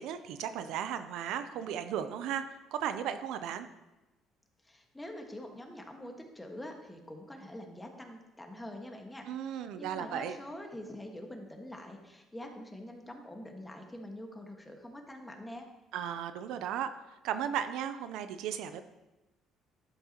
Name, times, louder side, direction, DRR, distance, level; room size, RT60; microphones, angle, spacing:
voice 1, 0.0-2.4 2.7-3.7 9.3-10.4 15.9-16.9 17.2-18.8, right 9 dB, 80° right, 10 dB, 0.5 m, -35 dB
voice 2, 4.6-15.7, left 1 dB, 10° left, 3 dB, 1.5 m, -45 dB
11.0 x 7.9 x 2.9 m, 1.0 s
supercardioid pair, 85°, 0 cm